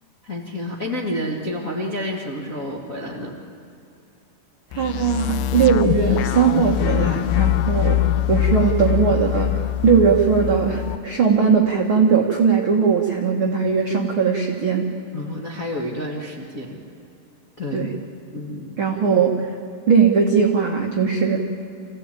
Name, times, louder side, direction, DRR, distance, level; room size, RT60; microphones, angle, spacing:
voice 1, 0.2-3.4 15.1-16.8 17.6-17.9 18.3-18.8, left 1 dB, 45° left, -1 dB, 1.1 m, -29 dB
sound 1, 4.7-11.0, left 13 dB, 80° left, 2.7 m, -22 dB
voice 2, 4.7-14.9 17.7-17.9 18.8-19.5 19.9-21.4, right 6 dB, 80° right, 1 dB, 1.1 m, -19 dB
25.5 x 16.0 x 9.0 m, 2.7 s
omnidirectional pair, 4.8 m